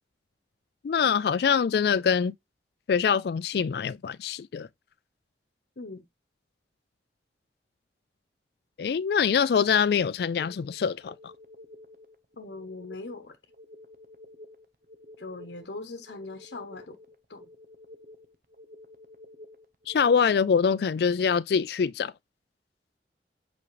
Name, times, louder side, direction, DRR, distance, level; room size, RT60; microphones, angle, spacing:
voice 1, 0.8-2.3 2.9-4.7 8.8-11.3 19.9-22.1, left 6 dB, 65° left, 0.3 m, -24 dB
sound 1, 10.4-20.3, left 2 dB, 50° right, 0.9 m, -51 dB
voice 2, 12.4-13.4 15.2-17.0 17.3-17.5, left 3 dB, 80° left, 0.9 m, -40 dB
8.4 x 5.1 x 3.1 m
head